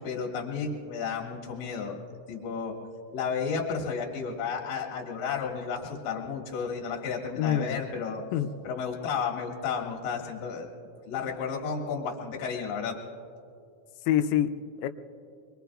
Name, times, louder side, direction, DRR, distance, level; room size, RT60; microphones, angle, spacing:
voice 1, 0.0-2.0 2.3-2.8 3.1-8.2 8.6-10.7 11.1-13.0, left 6 dB, 55° left, -1 dB, 2.9 m, -32 dB
voice 2, 7.4-7.8 8.3-8.5 14.1-14.9, left 10 dB, 85° left, 10 dB, 3.2 m, -26 dB
26.5 x 23.0 x 2.4 m, 2.4 s
omnidirectional pair, 6.0 m